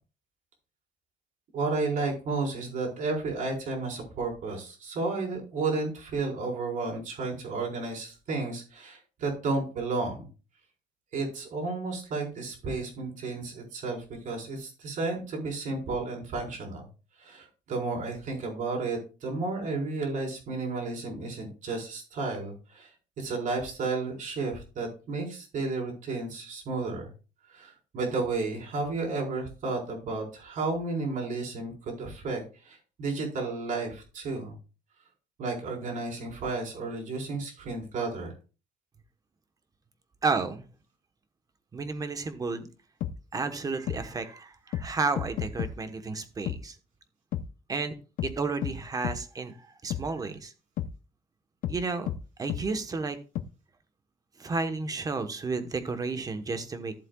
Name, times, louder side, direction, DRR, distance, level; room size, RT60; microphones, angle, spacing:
voice 1, 1.5-10.2 11.1-16.9 17.2-22.9 23.2-27.1 27.5-34.5 35.4-38.3, right 3 dB, 55° right, 0 dB, 4.5 m, -32 dB
voice 2, 40.2-40.6 41.7-42.7 43.3-46.7 47.7-47.9 48.2-49.5 49.8-50.5 51.7-52.1 52.4-53.2 54.4-56.9, right 4 dB, 25° right, 9 dB, 1.1 m, -32 dB
sound 1, 43.0-43.1 43.9-44.0 44.7-44.9 45.2-45.7 46.5-46.6 47.3-47.5 48.2-48.3 48.6-48.8 49.0-49.2 49.9-50.0 50.8-50.9 51.6-51.8 52.1-52.2 52.5-52.6 53.4-53.5, left 11 dB, 65° left, 0.7 m, -31 dB
14.5 x 7.6 x 2.4 m, 0.33 s
cardioid pair, 160°, 16 cm